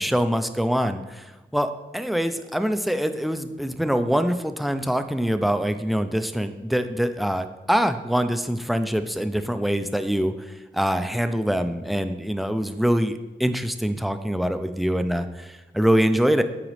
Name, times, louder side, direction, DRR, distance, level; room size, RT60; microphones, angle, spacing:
voice 1, 0.0-16.4, equal, ahead, 9 dB, 0.3 m, -24 dB
8.9 x 4.0 x 3.1 m, 1.1 s
wide cardioid pair, 90°, 19 cm